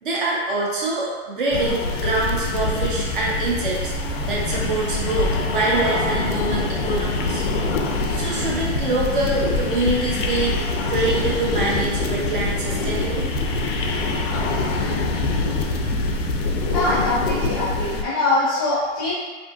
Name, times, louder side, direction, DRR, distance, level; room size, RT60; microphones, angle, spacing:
voice 1, 0.0-3.9 4.3-7.4 8.1-10.6 10.9-13.3, right 2 dB, 45° right, -4 dB, 0.6 m, -25 dB
sound 1, 1.5-18.0, left 3 dB, 80° left, 0.5 m, -25 dB
sound 2, 2.1-17.2, right 3 dB, 80° right, 0.9 m, -35 dB
voice 2, 16.6-19.1, left 2 dB, 20° left, -10 dB, 0.5 m, -23 dB
2.6 x 2.6 x 2.3 m, 1.3 s
hypercardioid pair, 175°, 37 cm